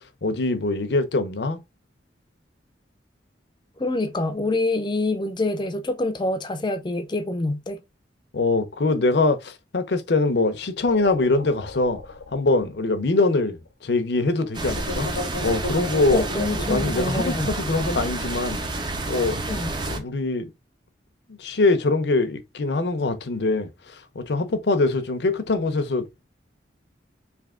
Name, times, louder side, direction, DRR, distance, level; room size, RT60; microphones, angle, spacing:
voice 1, 0.2-1.6 8.3-12.0 12.3-15.1 15.4-16.2 16.7-18.6 19.1-19.4 19.9-20.5 21.3-23.7 24.1-26.2, left 3 dB, 65° left, 0.6 m, -23 dB
voice 2, 3.8-7.8 16.1-17.5 19.5-19.7, left 2 dB, 25° left, 0.5 m, -26 dB
sound 1, 10.9-13.4 13.7-13.8 14.7-17.4, left 2 dB, 90° left, 0.9 m, -34 dB
sound 2, 14.5-20.0, right 2 dB, 25° right, 0.5 m, -29 dB
3.4 x 2.8 x 3.6 m
head